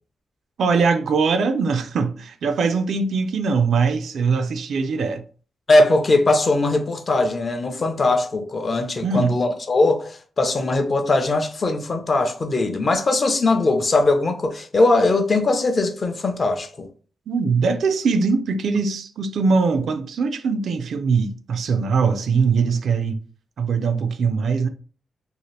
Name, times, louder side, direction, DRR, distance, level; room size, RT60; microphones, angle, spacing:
voice 1, 0.6-5.2 9.0-9.4 17.3-23.2 23.6-24.7, right 5 dB, 70° right, 0.3 m, -21 dB
voice 2, 5.7-16.9, left 2 dB, 35° left, 0.5 m, -20 dB
2.7 x 2.4 x 3.1 m
wide cardioid pair, 125°, 0 cm